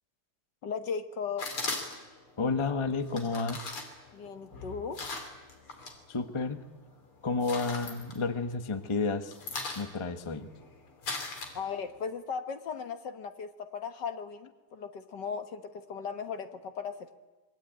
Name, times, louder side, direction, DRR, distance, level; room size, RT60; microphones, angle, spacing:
voice 1, 0.6-1.5 4.1-5.0 11.5-17.1, left 6 dB, 55° left, 9 dB, 1.7 m, -37 dB
sound 1, 1.4-2.2 3.1-6.0 6.3-6.9 7.2-8.7 9.0-12.0, left 3 dB, 75° left, 4.2 m, -39 dB
voice 2, 2.4-3.7 6.1-6.6 7.2-9.3 9.8-10.5, left 4 dB, 20° left, 9 dB, 0.9 m, -31 dB
25.5 x 21.5 x 9.0 m, 1.2 s
omnidirectional pair, 2.4 m